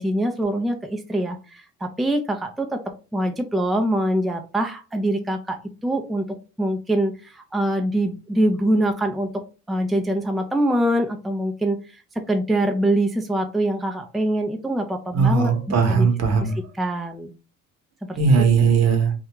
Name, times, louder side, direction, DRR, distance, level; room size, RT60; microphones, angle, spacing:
voice 1, 0.0-2.8 3.1-6.3 6.6-9.3 9.7-11.8 12.2-15.5 15.9-16.1 16.8-17.3 18.1-18.2, right 1 dB, ahead, 5 dB, 0.4 m, -24 dB
voice 2, 15.1-16.6 18.2-19.1, right 5 dB, 60° right, 6 dB, 0.8 m, -18 dB
2.4 x 2.2 x 2.9 m, 0.33 s
cardioid pair, 90°, 30 cm